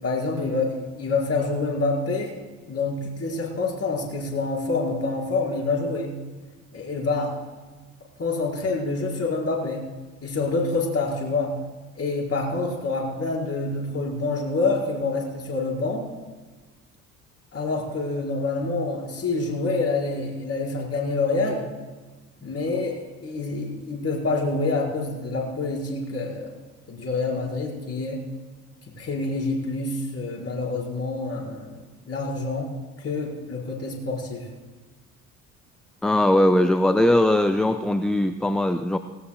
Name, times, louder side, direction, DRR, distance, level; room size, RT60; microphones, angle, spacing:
voice 1, 0.0-2.3 2.7-6.2 6.7-7.3 8.2-9.9 10.2-11.5 12.0-16.1 17.5-21.7 22.4-26.5 26.9-28.3 29.0-32.7 33.0-34.5, left 3 dB, 35° left, -2 dB, 5.1 m, -27 dB
voice 2, 36.0-39.0, left 1 dB, ahead, 10 dB, 0.4 m, -20 dB
19.0 x 18.5 x 2.3 m, 1.3 s
figure-of-eight pair, 55°, 42 cm